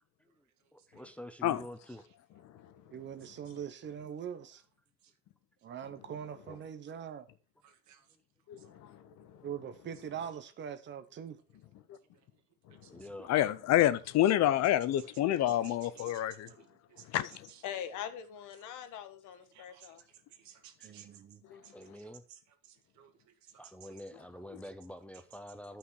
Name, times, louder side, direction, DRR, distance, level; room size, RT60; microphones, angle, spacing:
voice 1, 0.7-2.0 6.5-6.6 12.9-13.3 20.8-21.1 21.7-22.2 23.6-25.8, left 1 dB, 5° left, 0.5 m, -47 dB
voice 2, 2.3-3.9 5.8-6.7 8.5-9.9 11.5-11.9 12.6-13.2 13.6-13.7 15.5-15.6 17.0-20.0 21.4-21.8, left 9 dB, 80° left, 1.5 m, -47 dB
voice 3, 2.9-4.6 5.6-7.3 9.4-11.4 16.5-16.6 20.8-21.4, right 8 dB, 35° right, 0.9 m, -42 dB
voice 4, 7.6-8.1 8.6-8.7 12.7-13.1 15.0-15.1 15.4-17.2 17.5-17.6 19.5-20.0 20.3-21.2 21.6-24.0, right 10 dB, 70° right, 1.7 m, -57 dB
voice 5, 13.3-16.5 17.1-17.3 21.5-21.6, left 13 dB, 60° left, 0.7 m, -27 dB
13.0 x 5.8 x 4.7 m
cardioid pair, 175°, 30 cm